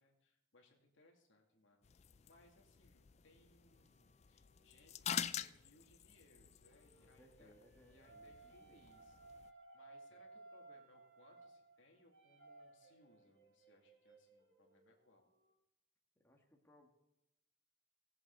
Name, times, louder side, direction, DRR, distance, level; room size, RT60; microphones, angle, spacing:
voice 1, 0.0-7.5 7.9-9.2 9.7-15.3, left 2 dB, 75° left, 1 dB, 2.3 m, -69 dB
sound 1, 1.8-9.5, left 9 dB, 35° left, 0.3 m, -48 dB
sound 2, 3.7-5.2 6.4-15.5, right 3 dB, 85° right, 3.5 m, -62 dB
voice 2, 6.9-8.9 16.1-16.9, left 1 dB, 10° left, 0 dB, 1.4 m, -67 dB
19.0 x 7.8 x 3.9 m, 0.86 s
head